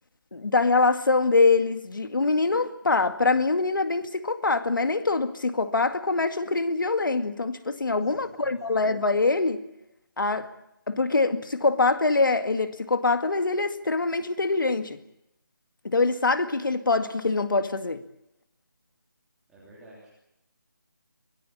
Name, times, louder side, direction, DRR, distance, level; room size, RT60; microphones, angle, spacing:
voice 1, 0.3-9.6 10.2-10.5 10.9-15.0 15.8-18.0, left 3 dB, 65° left, 2.1 m, -24 dB
voice 2, 7.9-8.6 19.5-20.1, right 1 dB, 5° right, 3.2 m, -51 dB
24.5 x 16.5 x 8.7 m
figure-of-eight pair, 175°, 11 cm